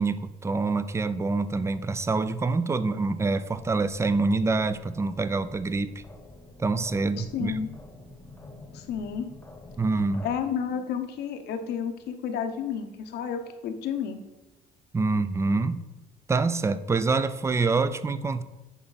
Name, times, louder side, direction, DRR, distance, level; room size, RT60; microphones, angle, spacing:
voice 1, 0.0-6.0 6.6-7.6 9.8-10.3 14.9-15.8 16.3-18.4, right 3 dB, 15° right, 13 dB, 0.4 m, -26 dB
sound 1, 3.5-10.4, left 2 dB, 15° left, 1.0 m, -47 dB
voice 2, 7.2-7.7 8.7-9.3 10.2-14.2, left 7 dB, 75° left, 7 dB, 0.9 m, -31 dB
11.0 x 4.4 x 4.1 m, 1.1 s
cardioid pair, 110°, 17 cm